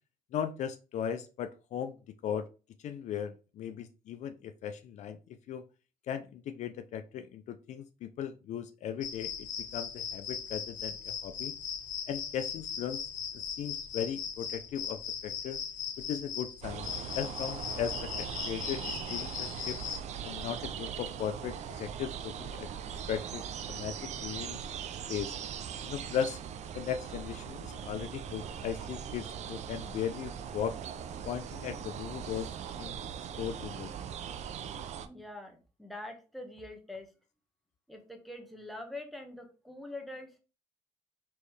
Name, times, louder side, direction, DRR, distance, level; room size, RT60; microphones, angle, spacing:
voice 1, 0.3-2.0 2.2-2.5 2.8-5.2 5.5-5.6 6.1-9.5 9.7-11.5 12.1-13.0 13.6-15.6 16.0-19.8 20.2-22.7 23.1-24.6 25.1-25.3 25.8-26.4 26.7-30.8 31.2-32.5 32.8-33.0 33.4-33.9, left 8 dB, 65° left, 10 dB, 0.4 m, -37 dB
sound 1, 9.0-20.0, left 7 dB, 90° left, 0.9 m, -39 dB
sound 2, 16.6-35.1, right 8 dB, 65° right, 0.5 m, -40 dB
voice 2, 35.0-37.1 37.9-40.4, left 2 dB, ahead, 3 dB, 1.0 m, -44 dB
4.5 x 3.1 x 3.2 m, 0.33 s
cardioid pair, 100°, 13 cm